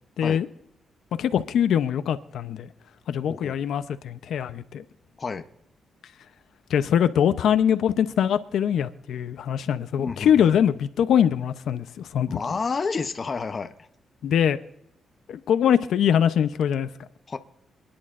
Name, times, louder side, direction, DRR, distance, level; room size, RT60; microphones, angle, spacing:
voice 1, 0.2-0.5 1.2-2.7 3.1-4.8 6.7-12.4 14.2-14.6 15.3-16.9, left 9 dB, 75° left, 0.7 m, -23 dB
voice 2, 10.0-10.6 12.3-13.9 17.3-17.4, left 4 dB, 30° left, 0.7 m, -30 dB
27.5 x 10.5 x 2.5 m
cardioid pair, 140°, 0 cm